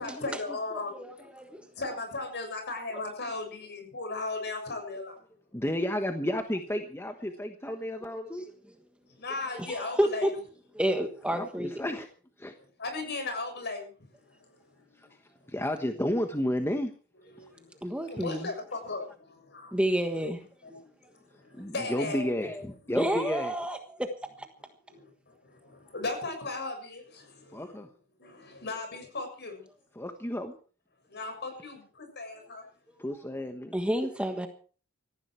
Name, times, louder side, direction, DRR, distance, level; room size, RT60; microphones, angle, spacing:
voice 1, 0.0-5.2 9.2-10.3 12.8-13.9 14.2-14.6 15.0-15.1 17.3-17.7 18.0-19.8 20.6-20.7 21.4-22.3 24.9-27.8 28.2-29.6 31.1-32.7, left 3 dB, 55° left, 6 dB, 7.0 m, -37 dB
voice 2, 0.7-1.6 2.9-3.0 9.5-10.3 10.7-11.8 17.8-18.5 19.7-20.4 22.9-24.1 33.7-34.5, right 1 dB, 5° right, 6 dB, 1.4 m, -30 dB
voice 3, 5.5-8.4 11.3-12.1 12.4-12.5 15.5-16.9 21.6-23.5 27.5-27.9 30.0-30.5 33.0-33.7, left 1 dB, 10° left, 6 dB, 1.2 m, -32 dB
18.0 x 15.0 x 4.7 m, 0.40 s
head